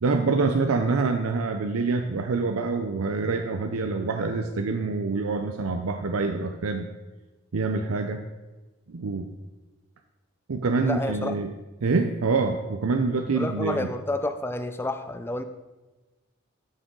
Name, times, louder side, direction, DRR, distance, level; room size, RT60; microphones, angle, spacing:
voice 1, 0.0-6.9 7.5-8.2 8.9-9.3 10.5-11.5 11.8-13.9, right 4 dB, 90° right, 6 dB, 0.6 m, -26 dB
voice 2, 10.8-11.3 13.3-15.4, left 2 dB, 10° left, 9 dB, 0.5 m, -30 dB
12.5 x 6.4 x 3.8 m, 1.2 s
head